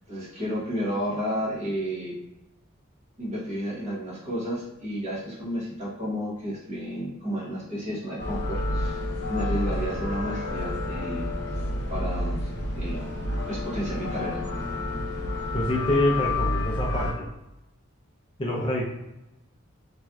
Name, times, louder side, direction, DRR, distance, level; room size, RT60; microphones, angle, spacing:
voice 1, 0.1-2.2 3.2-9.0 9.3-11.3 11.9-12.5 12.7-13.1 13.5-14.4, equal, 35° right, -6 dB, 1.1 m, -31 dB
sound 1, 8.2-17.1, left 2 dB, 55° left, 0.7 m, -29 dB
voice 2, 15.5-17.2 18.4-18.8, left 1 dB, 25° left, -3 dB, 0.5 m, -26 dB
3.2 x 2.6 x 2.3 m, 0.90 s
head